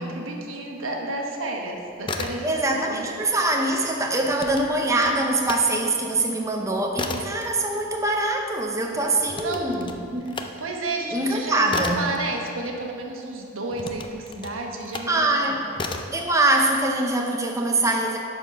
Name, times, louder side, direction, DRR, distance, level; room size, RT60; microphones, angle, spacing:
voice 1, 0.0-3.1 9.0-9.2 9.4-9.9 10.6-15.5, right 2 dB, 90° right, 1 dB, 1.1 m, -31 dB
sound 1, 1.9-2.9 3.2-5.6 6.0-13.1 13.7-15.2 15.7-16.2, left 3 dB, 25° left, 0.4 m, -35 dB
voice 2, 2.4-10.3 11.1-12.0 15.1-15.6 16.1-18.2, right 2 dB, 15° right, 1 dB, 0.6 m, -23 dB
10.5 x 4.5 x 5.7 m, 2.5 s
head